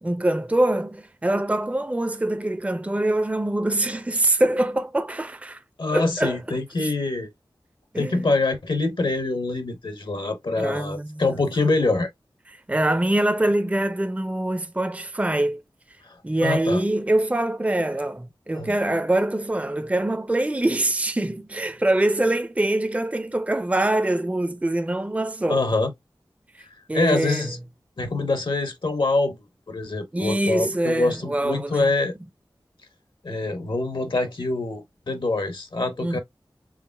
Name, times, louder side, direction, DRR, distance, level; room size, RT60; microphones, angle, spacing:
voice 1, 0.0-5.6 5.9-6.4 6.8-6.9 7.9-8.3 10.6-11.2 12.7-15.6 16.2-25.7 26.9-27.5 30.1-31.9 36.0-36.2, right 1 dB, 15° right, 0.5 m, -24 dB
voice 2, 5.8-7.3 8.0-12.1 16.0-16.8 18.5-18.7 25.5-25.9 26.9-27.6 28.0-29.4 29.7-32.1 33.2-36.2, left 3 dB, 70° left, 0.9 m, -25 dB
4.8 x 3.2 x 2.2 m
wide cardioid pair, 50°, 9 cm